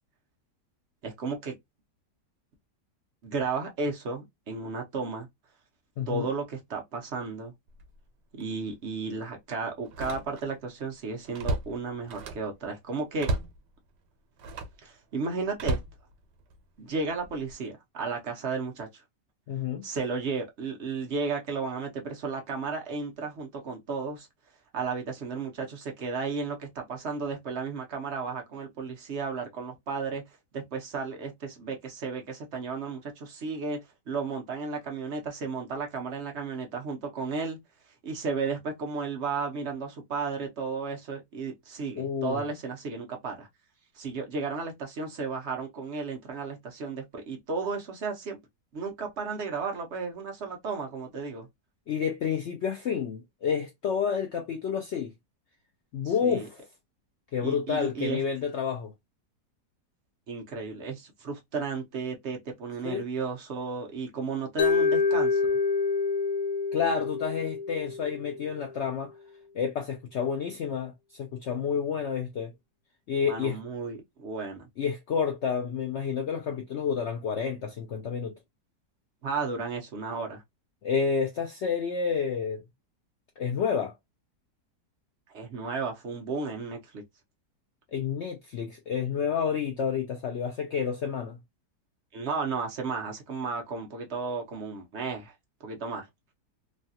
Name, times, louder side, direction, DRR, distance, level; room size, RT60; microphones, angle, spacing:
voice 1, 1.0-1.5 3.2-5.3 6.1-7.5 8.3-13.3 14.8-15.8 16.8-18.9 19.8-24.3 24.7-30.2 30.5-33.8 34.1-37.6 38.0-43.5 43.9-48.4 48.7-51.5 56.2-56.5 57.4-58.2 60.3-65.6 73.3-74.7 79.2-80.4 85.3-87.0 92.1-95.3 95.6-96.0, right 4 dB, 55° right, 0.8 m, -33 dB
voice 2, 6.0-6.3 19.5-19.9 42.0-42.4 51.9-55.1 55.9-56.6 57.3-58.9 62.8-63.0 66.7-69.1 69.5-72.5 73.1-73.6 74.8-78.4 80.8-82.6 83.4-83.9 87.9-91.4, left 7 dB, 85° left, 0.6 m, -29 dB
Slam, 7.7-8.0 8.4-8.5 9.8-10.7 11.0-12.6 13.2-13.6 14.4-14.8 15.5-16.6 17.2-17.5, right 2 dB, 85° right, 1.3 m, -34 dB
Mallet percussion, 64.6-68.7, left 4 dB, 65° left, 1.1 m, -27 dB
3.2 x 2.3 x 2.6 m
omnidirectional pair, 1.8 m